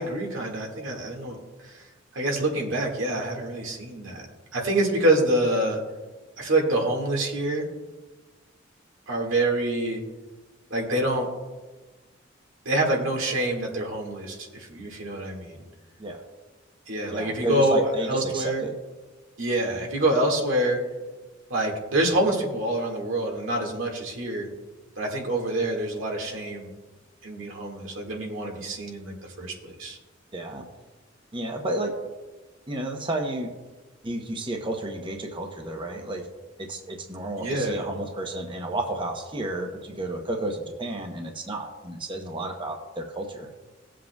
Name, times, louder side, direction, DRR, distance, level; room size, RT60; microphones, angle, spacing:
voice 1, 0.0-1.4 1.7-1.8 2.1-4.3 4.5-5.8 6.4-7.7 9.1-10.0 10.7-11.3 12.7-15.6 16.9-18.6 19.4-20.8 21.5-24.5 25.0-26.7 27.2-30.0 37.4-37.9, right 1 dB, 85° right, 0 dB, 1.9 m, -26 dB
voice 2, 17.1-18.7 30.3-30.6 31.3-32.0 32.7-33.5 34.0-36.2 36.6-43.5, right 2 dB, 25° right, 2 dB, 0.8 m, -31 dB
18.5 x 7.5 x 2.3 m, 1.2 s
head